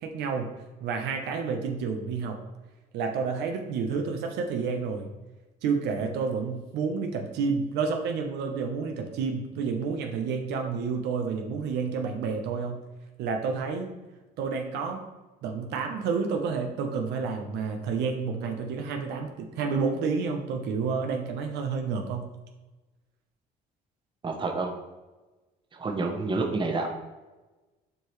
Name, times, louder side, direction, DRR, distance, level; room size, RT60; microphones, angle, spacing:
voice 1, 0.0-2.4 2.9-5.1 5.6-12.8 13.2-13.9 14.4-15.0 15.4-22.3, right 5 dB, 85° right, 4 dB, 1.0 m, -30 dB
voice 2, 24.2-24.7 25.7-26.9, right 3 dB, 30° right, 3 dB, 1.1 m, -28 dB
7.5 x 4.8 x 3.2 m, 1.2 s
cardioid pair, 110°, 17 cm